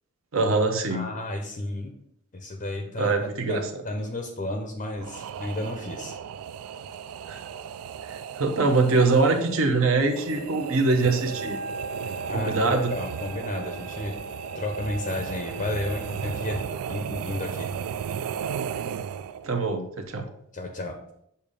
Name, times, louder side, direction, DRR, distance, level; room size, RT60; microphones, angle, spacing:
voice 1, 0.3-1.1 3.0-3.6 7.3-7.5 8.0-11.6 12.3-12.9 19.4-20.3, right 3 dB, 65° right, 4 dB, 0.9 m, -23 dB
voice 2, 0.9-1.9 2.3-6.1 12.3-14.1 14.5-16.6 16.9-17.7 20.5-21.0, left 1 dB, 35° left, 3 dB, 0.5 m, -32 dB
sound 1, 5.0-19.5, right 8 dB, 85° right, 0.3 m, -35 dB
Wind instrument woodwind instrument, 11.2-16.8, equal, 35° right, 1.3 m, -40 dB
6.7 x 2.7 x 5.1 m, 0.74 s
head